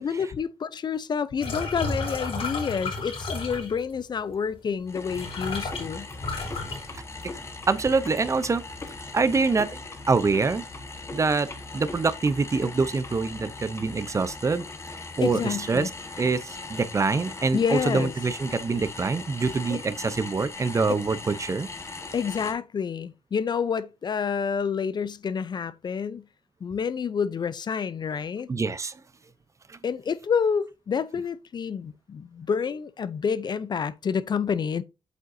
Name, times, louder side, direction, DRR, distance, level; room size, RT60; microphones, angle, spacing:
voice 1, 0.0-6.1 15.2-15.9 17.5-18.1 19.7-19.8 22.1-26.2 26.6-28.5 29.8-34.8, left 6 dB, 45° left, 0.5 m, -28 dB
sound 1, 1.4-3.9 4.8-4.9 5.1-7.5 7.9-8.3 8.7-9.4, left 3 dB, 65° left, 3.3 m, -33 dB
sound 2, 4.9-22.5, left 3 dB, 25° left, 1.1 m, -39 dB
voice 2, 7.7-8.6 9.1-9.8 10.1-10.6 11.1-14.7 15.2-15.9 16.2-21.7 28.5-29.0 29.7-29.8, right 4 dB, 30° right, 0.6 m, -25 dB
7.8 x 5.1 x 2.6 m
cardioid pair, 100°, 10 cm